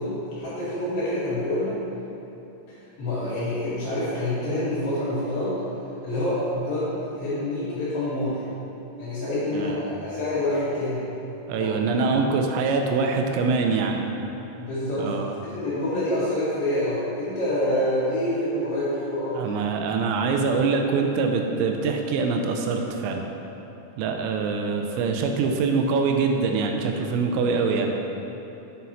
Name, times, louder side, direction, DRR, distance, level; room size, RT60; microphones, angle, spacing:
voice 1, 0.0-1.8 3.0-5.6 6.0-8.4 9.0-11.1 11.6-12.1 14.6-19.7, left 1 dB, 55° left, -12 dB, 3.2 m, -27 dB
voice 2, 9.5-9.9 11.5-14.0 15.0-15.3 19.4-23.2 24.0-27.9, right 4 dB, 85° right, 3 dB, 3.2 m, -24 dB
8.3 x 7.5 x 2.9 m, 3.0 s
omnidirectional pair, 6.0 m